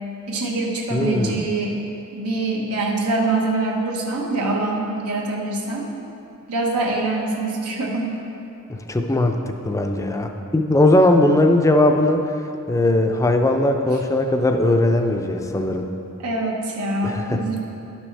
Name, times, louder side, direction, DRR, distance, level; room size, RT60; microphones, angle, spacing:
voice 1, 0.3-1.8 2.1-5.9 6.5-8.1 16.2-17.6, right 2 dB, 90° right, -1 dB, 1.1 m, -24 dB
voice 2, 0.9-1.5 8.7-12.2 12.7-15.9 17.0-17.4, left 1 dB, 15° left, 4 dB, 0.4 m, -19 dB
11.5 x 6.2 x 3.3 m, 2.8 s
head